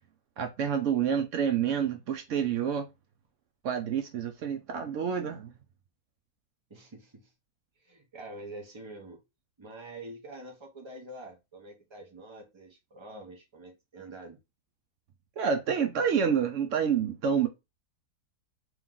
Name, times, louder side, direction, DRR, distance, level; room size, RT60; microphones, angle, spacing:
voice 1, 0.4-2.9 3.6-5.5 15.4-17.5, right 7 dB, 75° right, 0.7 m, -28 dB
voice 2, 6.7-7.3 7.8-9.2 9.6-14.4, right 2 dB, 35° right, 0.4 m, -46 dB
3.1 x 3.0 x 3.7 m
omnidirectional pair, 1.8 m